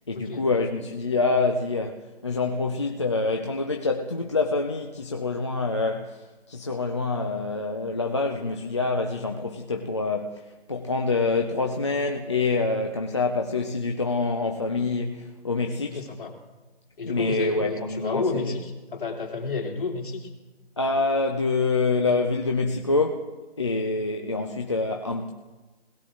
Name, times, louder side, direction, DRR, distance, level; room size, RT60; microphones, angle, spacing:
voice 1, 0.1-16.0 17.1-18.6 20.8-23.3 23.6-25.3, left 3 dB, 30° left, 0.6 m, -26 dB
voice 2, 15.9-16.3 17.0-20.3, left 4 dB, 50° left, 2.8 m, -30 dB
21.0 x 18.0 x 2.5 m
figure-of-eight pair, 160°, 32 cm